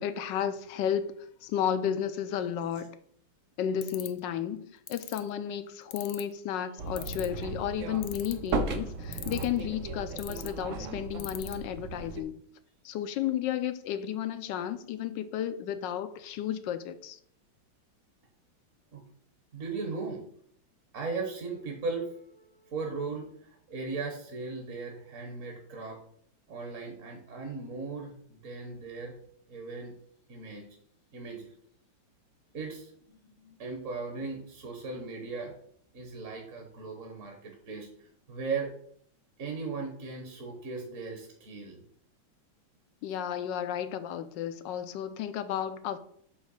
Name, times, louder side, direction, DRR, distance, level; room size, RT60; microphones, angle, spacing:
voice 1, 0.0-2.9 3.6-12.4 12.8-17.2 43.0-46.0, left 9 dB, 70° left, 1.2 m, -33 dB
sound 1, 3.8-4.2 4.9-5.2 5.9-6.3 7.0-7.4 8.0-8.5 9.1-9.6 10.2-10.5 11.2-11.5, left 13 dB, 85° left, 1.6 m, -39 dB
sound 2, 6.8-12.2, right 3 dB, 65° right, 0.7 m, -36 dB
voice 2, 19.5-20.2 20.9-26.0 26.5-29.1 29.5-29.9 30.3-30.6 31.1-31.5 32.5-35.5 35.9-37.9 38.3-38.7 39.4-41.8, right 4 dB, 45° right, 1.4 m, -37 dB
8.3 x 3.2 x 6.4 m
omnidirectional pair, 2.3 m